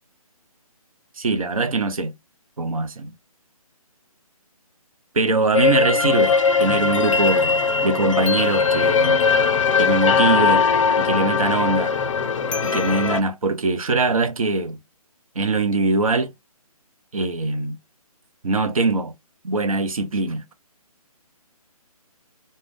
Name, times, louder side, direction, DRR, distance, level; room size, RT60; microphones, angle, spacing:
voice 1, 1.2-2.2 2.6-3.1 5.1-9.2 9.8-10.7 11.0-11.9 12.6-14.8 15.3-16.3 17.1-17.8 18.4-19.1 19.4-20.5, right 3 dB, 65° right, 0.7 m, -22 dB
sound 1, 5.5-13.2, left 5 dB, 55° left, 0.5 m, -19 dB
2.4 x 2.1 x 3.4 m
figure-of-eight pair, 150°, 19 cm